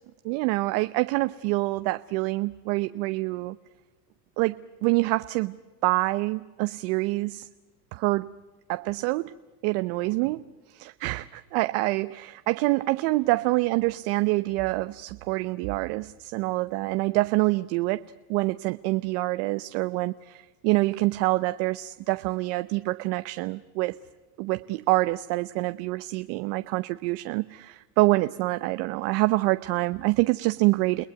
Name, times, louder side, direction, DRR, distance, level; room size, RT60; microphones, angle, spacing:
voice 1, 0.2-3.6 4.4-5.5 5.8-7.5 7.9-8.3 8.7-9.3 9.6-10.4 10.7-18.0 18.3-24.0 24.4-31.0, right 21 dB, 70° right, 12 dB, 0.9 m, -26 dB
30.0 x 19.0 x 9.3 m, 1.2 s
supercardioid pair, 105°, 48 cm